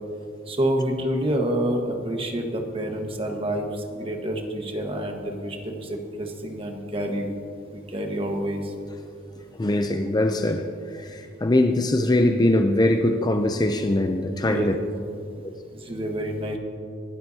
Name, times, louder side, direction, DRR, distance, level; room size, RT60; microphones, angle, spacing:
voice 1, 0.5-7.4 7.7-8.7 14.4-14.7 15.8-16.6, right 1 dB, 30° right, 3 dB, 1.5 m, -28 dB
voice 2, 9.5-14.8, left 1 dB, 20° left, 6 dB, 0.5 m, -22 dB
26.0 x 12.5 x 2.8 m, 2.5 s
head